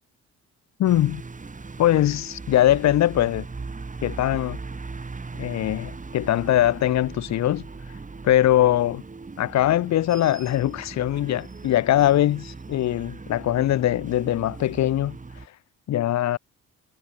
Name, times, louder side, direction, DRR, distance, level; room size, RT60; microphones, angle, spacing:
voice 1, 0.8-1.2 1.8-3.5 4.0-4.6 5.4-7.7 8.2-9.0 9.4-15.2 15.9-16.4, left 13 dB, 65° left, 0.9 m, -21 dB
sound 1, 0.8-15.5, right 4 dB, 25° right, 5.6 m, -39 dB
cardioid pair, 90°, 30 cm